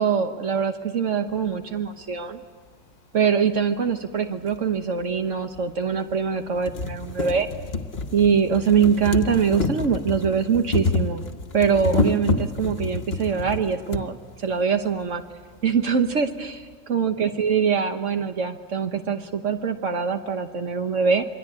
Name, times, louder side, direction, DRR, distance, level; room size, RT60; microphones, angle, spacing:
voice 1, 0.0-2.4 3.1-7.5 8.1-11.2 11.5-15.2 15.6-21.3, right 6 dB, 75° right, 7 dB, 1.5 m, -23 dB
sound 1, 4.5-4.6 5.6-5.7 6.1-6.2 6.5-14.1 15.0-15.1 15.3-15.4, left 3 dB, 55° left, 1.4 m, -28 dB
27.5 x 23.0 x 9.5 m, 1.5 s
omnidirectional pair, 1.3 m